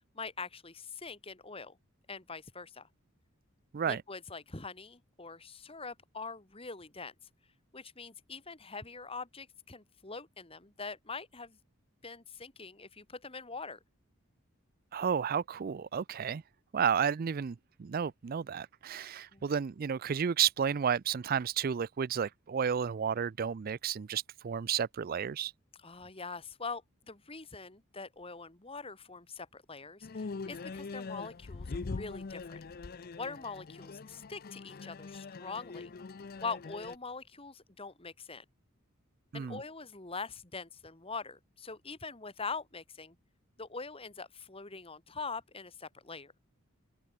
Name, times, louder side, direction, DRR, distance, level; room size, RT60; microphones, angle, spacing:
voice 1, 0.1-1.8 2.1-2.9 3.9-7.1 7.7-11.6 12.0-13.8 19.3-19.5 25.8-32.6 33.2-35.9 36.4-38.4 39.3-43.2 43.6-46.3, left 4 dB, 25° left, 2.1 m, -43 dB
voice 2, 14.9-16.4 16.7-25.5 39.3-39.6, right 7 dB, 40° right, 0.4 m, -32 dB
sound 1, 30.0-37.0, left 4 dB, 45° left, 0.5 m, -42 dB
head